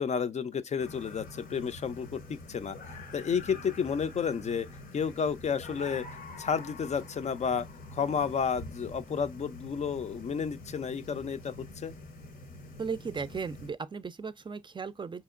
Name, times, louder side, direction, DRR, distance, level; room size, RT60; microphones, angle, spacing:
voice 1, 0.0-4.7 4.9-7.7 7.9-12.0, left 6 dB, 55° left, 0.4 m, -31 dB
sound 1, 0.8-13.7, left 2 dB, 90° left, 0.8 m, -46 dB
voice 2, 12.8-15.2, right 5 dB, 35° right, 0.4 m, -36 dB
4.2 x 2.8 x 2.4 m
cardioid pair, 60°, 14 cm